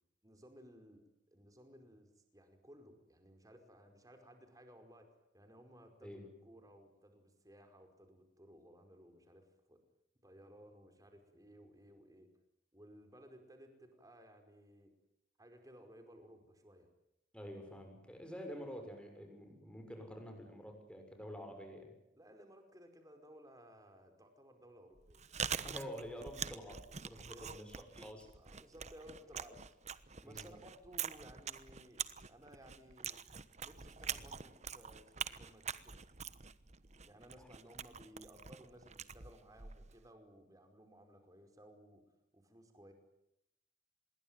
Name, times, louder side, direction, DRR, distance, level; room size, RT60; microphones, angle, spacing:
voice 1, 0.2-1.0 1.3-5.1 5.3-9.8 10.2-12.3 12.7-14.9 15.4-16.9 22.1-25.2 27.2-27.6 28.4-29.9 30.2-33.2 33.6-36.0 37.0-42.0 42.3-42.9, equal, 20° right, 6 dB, 5.0 m, -59 dB
voice 2, 17.3-21.9 25.6-28.3 30.2-30.5, equal, 5° left, 4 dB, 6.7 m, -48 dB
Chewing mastication, 25.0-40.1, right 7 dB, 40° right, 1.1 m, -45 dB
26.0 x 22.0 x 9.6 m, 0.83 s
head